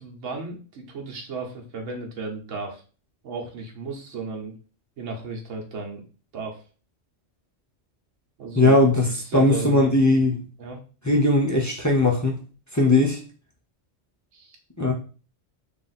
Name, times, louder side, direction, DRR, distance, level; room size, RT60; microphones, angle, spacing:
voice 1, 0.0-2.8 3.2-4.5 5.0-6.0 6.3-6.6 8.4-8.8 9.2-10.0 10.6-10.8 14.3-14.6, right 3 dB, 90° right, 0 dB, 1.2 m, -34 dB
voice 2, 8.5-9.1 9.3-10.4 11.0-12.4 12.7-13.2 14.8-14.9, left 2 dB, 25° left, -2 dB, 0.4 m, -19 dB
3.4 x 2.5 x 4.0 m, 0.37 s
omnidirectional pair, 1.3 m